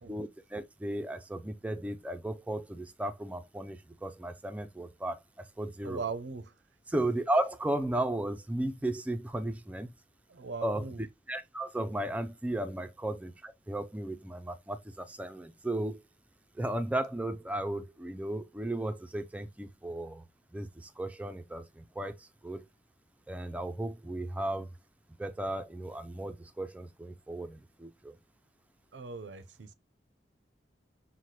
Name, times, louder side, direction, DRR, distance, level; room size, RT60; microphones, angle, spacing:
voice 1, 0.1-6.0 6.9-9.9 10.6-16.0 16.5-20.2 20.5-22.7 23.3-24.7 25.2-28.2, right 1 dB, 10° right, 0.3 m, -35 dB
voice 2, 5.8-6.5 10.3-11.0 28.9-29.7, right 4 dB, 80° right, 0.5 m, -39 dB
5.7 x 2.0 x 3.1 m
head